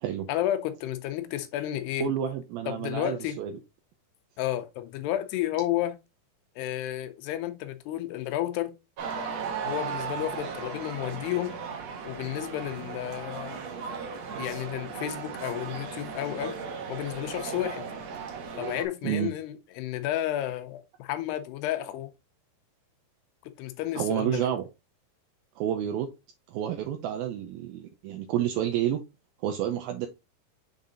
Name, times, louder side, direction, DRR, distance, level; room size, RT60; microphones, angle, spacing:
voice 1, 0.3-2.1 2.7-3.4 4.4-6.0 6.6-8.7 9.6-11.6 12.0-13.6 14.4-16.6 16.9-17.8 18.6-22.1 23.4-24.5, left 13 dB, 90° left, 2.8 m, -32 dB
voice 2, 2.0-3.5 19.0-19.3 24.0-24.6 25.6-26.1 26.5-29.0 29.4-30.1, right 10 dB, 80° right, 2.3 m, -29 dB
sound 1, 9.0-18.8, right 6 dB, 60° right, 1.8 m, -36 dB
7.2 x 3.9 x 3.7 m
omnidirectional pair, 4.7 m